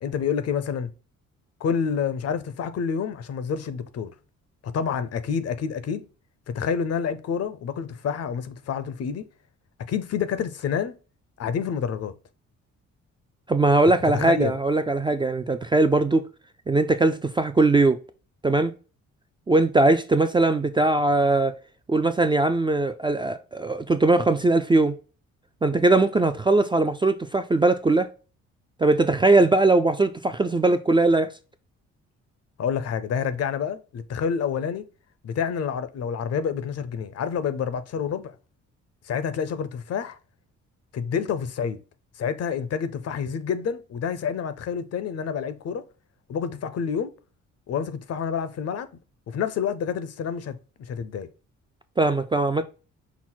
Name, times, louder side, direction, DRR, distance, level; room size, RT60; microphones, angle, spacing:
voice 1, 0.0-0.9 1.6-4.1 4.6-6.0 6.5-9.3 9.9-10.9 11.4-12.1 14.1-14.6 32.6-34.8 35.2-38.4 39.1-40.2 40.9-41.8 42.2-45.8 46.3-47.1 47.7-48.9 49.3-51.3, left 7 dB, 55° left, 0.6 m, -28 dB
voice 2, 13.5-16.2 16.7-18.0 18.4-18.7 19.5-21.5 21.9-24.9 25.6-28.1 28.8-31.3 52.0-52.6, right 2 dB, 15° right, 0.3 m, -20 dB
5.8 x 2.1 x 4.4 m
cardioid pair, 90°, 30 cm